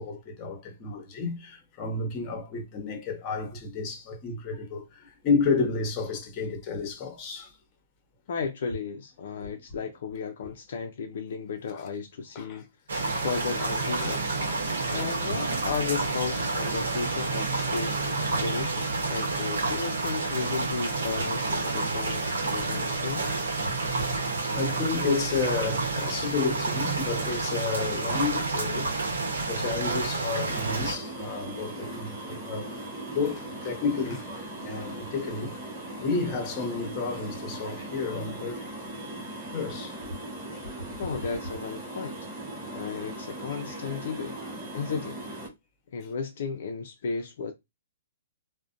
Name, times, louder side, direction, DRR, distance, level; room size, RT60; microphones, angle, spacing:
voice 1, 0.0-7.5 9.4-9.5 11.7-11.8 12.3-12.6 13.1-13.3 13.6-13.7 14.0-15.1 17.5-17.7 23.8-23.9 24.2-24.3 24.5-28.9 29.5-32.8 33.1-35.5 36.0-38.7 39.1-39.2 39.5-40.0 40.5-40.6, left 4 dB, 30° left, 0.8 m, -31 dB
voice 2, 8.3-12.7 13.2-14.2 14.9-23.2 41.0-42.2 42.7-44.4 44.7-45.2 45.9-47.5, left 5 dB, 65° left, 0.4 m, -34 dB
sound 1, 12.9-30.9, right 3 dB, 85° right, 0.8 m, -29 dB
sound 2, 30.5-45.5, right 1 dB, 20° right, 1.2 m, -39 dB
2.5 x 2.1 x 2.4 m
hypercardioid pair, 150°, 0 cm